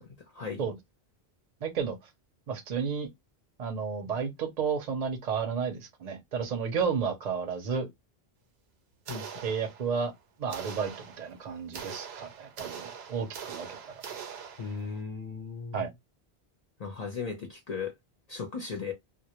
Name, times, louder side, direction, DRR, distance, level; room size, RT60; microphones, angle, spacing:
voice 1, 0.0-0.7 9.1-9.3 14.6-15.9 16.8-17.9 18.3-18.9, left 5 dB, 50° left, 0.6 m, -37 dB
voice 2, 1.6-2.0 2.5-3.1 3.6-7.9 9.4-10.1 10.4-13.8 15.7-15.9, right 6 dB, 50° right, 0.6 m, -32 dB
sound 1, 9.1-10.1 10.5-15.0, right 7 dB, 90° right, 0.9 m, -43 dB
2.1 x 2.1 x 2.8 m
omnidirectional pair, 1.1 m